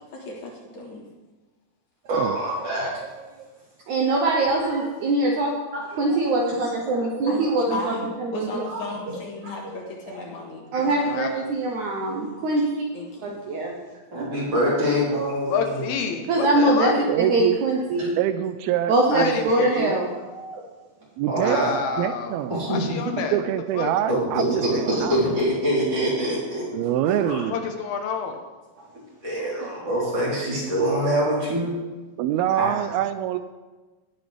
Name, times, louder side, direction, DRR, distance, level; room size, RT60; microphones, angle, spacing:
voice 1, 0.1-1.1 7.2-11.1 12.9-13.4, left 2 dB, 55° left, -2 dB, 2.7 m, -36 dB
voice 2, 2.1-2.9 5.7-5.8 14.1-15.8 21.3-21.8 22.5-23.0 24.1-26.7 27.2-27.4 29.2-31.7 32.6-32.7, equal, 40° right, -5 dB, 4.7 m, -24 dB
voice 3, 3.9-5.5 5.9-8.8 9.1-9.2 10.7-12.9 13.2-13.7 16.3-18.1 18.9-20.6 24.8-25.0, right 2 dB, 65° right, 0 dB, 2.0 m, -23 dB
voice 4, 15.5-17.2 19.1-20.0 21.4-22.4 22.7-23.4 23.8-23.9 27.5-28.4, left 6 dB, 80° left, 4 dB, 2.9 m, -28 dB
voice 5, 17.1-17.6 18.2-19.5 19.8-20.0 21.2-22.6 23.3-25.2 26.7-27.6 32.2-33.4, right 11 dB, 85° right, 11 dB, 2.4 m, -25 dB
19.0 x 7.9 x 3.5 m, 1.2 s
omnidirectional pair, 4.4 m